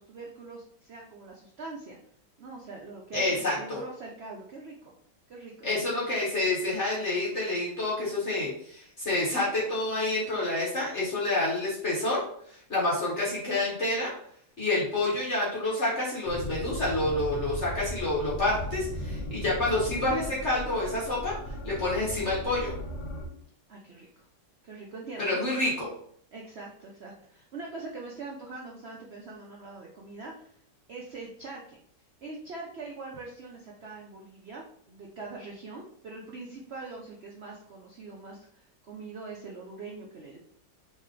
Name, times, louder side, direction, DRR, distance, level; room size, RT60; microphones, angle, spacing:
voice 1, 0.0-2.0 2.4-4.9 5.3-6.1 23.7-24.3 24.6-25.9 26.3-30.5 30.9-31.8 32.2-40.4, right 3 dB, 90° right, -1 dB, 0.5 m, -43 dB
voice 2, 3.1-3.8 5.6-14.1 14.6-22.7 25.2-25.9, left 2 dB, 45° left, -5 dB, 1.2 m, -28 dB
sound 1, 16.3-23.3, left 1 dB, 65° left, 1.5 m, -37 dB
3.3 x 3.2 x 3.7 m, 0.64 s
omnidirectional pair, 1.9 m